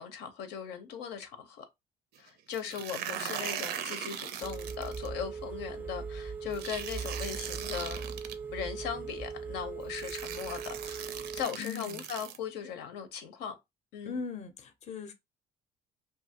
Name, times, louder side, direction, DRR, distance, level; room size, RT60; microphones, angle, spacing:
voice 1, 0.0-1.6 2.2-8.1 8.5-11.1 11.3-13.5 13.9-14.3, left 8 dB, 85° left, 0.7 m, -39 dB
sound 1, 2.5-5.1 6.5-8.3 9.4-9.5 9.9-12.4, right 9 dB, 70° right, 0.5 m, -39 dB
voice 2, 2.9-3.4 11.6-12.0 14.0-15.1, left 5 dB, 40° left, 0.6 m, -40 dB
Telephone, 4.4-11.4, right 5 dB, 10° right, 0.4 m, -39 dB
2.7 x 2.4 x 2.7 m
cardioid pair, 110°, 17 cm